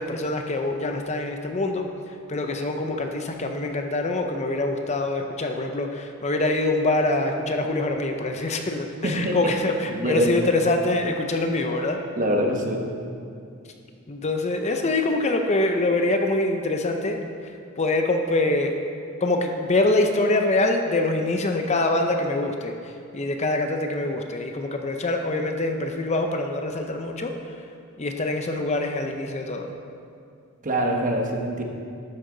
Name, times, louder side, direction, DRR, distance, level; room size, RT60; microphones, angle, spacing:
voice 1, 0.0-1.9 2.3-12.0 14.1-17.2 17.8-18.8 19.2-22.7 23.1-27.3 28.0-29.7, left 2 dB, 30° left, 4 dB, 0.6 m, -24 dB
voice 2, 9.0-9.4 9.9-10.4 12.2-12.8 30.6-31.6, equal, 35° right, 1 dB, 1.1 m, -24 dB
12.0 x 8.7 x 3.9 m, 2.4 s
head